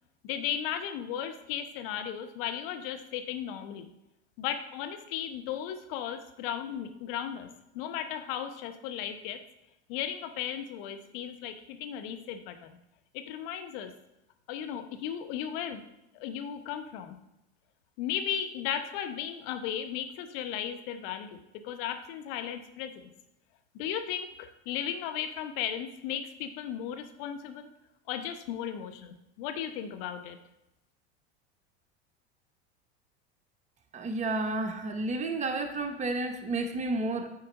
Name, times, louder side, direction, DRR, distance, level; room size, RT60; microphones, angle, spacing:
voice 1, 0.2-3.9 4.4-7.5 7.7-9.4 9.9-12.8 13.1-13.9 14.5-15.8 16.1-17.2 18.0-22.9 23.7-27.7 28.1-30.4, left 9 dB, 55° left, 8 dB, 0.9 m, -35 dB
voice 2, 33.9-37.3, right 2 dB, 20° right, 5 dB, 0.9 m, -31 dB
9.0 x 4.2 x 4.0 m, 0.89 s
hypercardioid pair, 80°, 33 cm